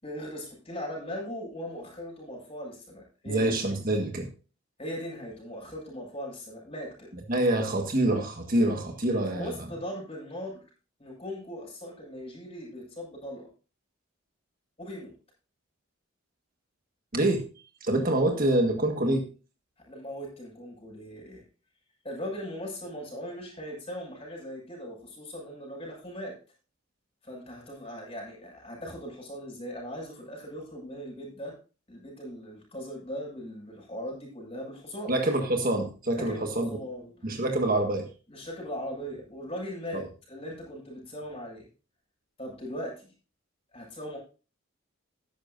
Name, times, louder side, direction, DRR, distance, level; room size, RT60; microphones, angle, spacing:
voice 1, 0.0-3.5 4.8-7.1 9.3-10.6 11.0-13.5 14.8-15.1 19.9-21.4 22.0-26.3 27.2-31.5 31.9-35.1 36.2-37.3 38.3-41.7 42.4-43.1 43.7-44.2, equal, 30° left, -2 dB, 6.6 m, -39 dB
voice 2, 3.3-4.3 7.3-9.5 17.1-17.4 17.8-19.3 35.1-36.7 37.2-38.1 39.9-40.0, right 1 dB, 45° right, 4 dB, 1.6 m, -26 dB
14.0 x 11.0 x 2.7 m, 0.35 s
head